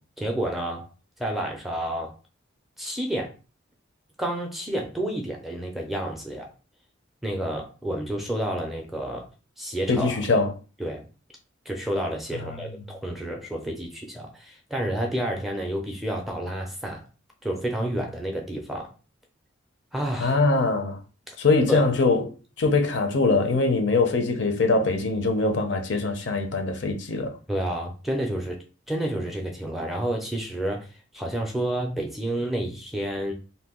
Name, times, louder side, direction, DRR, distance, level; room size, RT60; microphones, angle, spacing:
voice 1, 0.2-0.9 1.2-2.2 2.8-3.3 4.2-6.5 7.2-9.3 9.6-10.3 10.8-11.1 11.7-17.0 17.4-18.9 19.9-20.4 21.3-21.4 21.7-21.9 27.5-30.9 31.1-33.3, right 1 dB, ahead, 0.4 m, -30 dB
voice 2, 9.9-10.5 12.4-12.6 20.2-21.0 21.4-27.4, left 3 dB, 60° left, 0.5 m, -23 dB
2.7 x 2.2 x 3.6 m
head